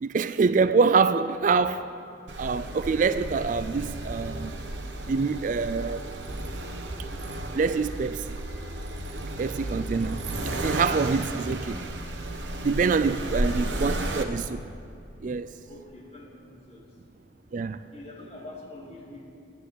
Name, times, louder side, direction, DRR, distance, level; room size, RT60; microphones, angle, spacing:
voice 1, 0.0-1.9 2.4-4.6 5.1-6.1 7.5-8.4 9.4-10.2 10.5-11.8 12.6-14.6 15.2-15.5 17.5-17.8, right 5 dB, 40° right, 0.3 m, -25 dB
Accelerating revving vroom, 2.3-14.2, right 1 dB, 65° right, 1.1 m, -33 dB
voice 2, 13.3-13.7 15.7-16.9 17.8-19.2, left 1 dB, 35° left, 2.3 m, -45 dB
14.0 x 10.0 x 8.2 m
head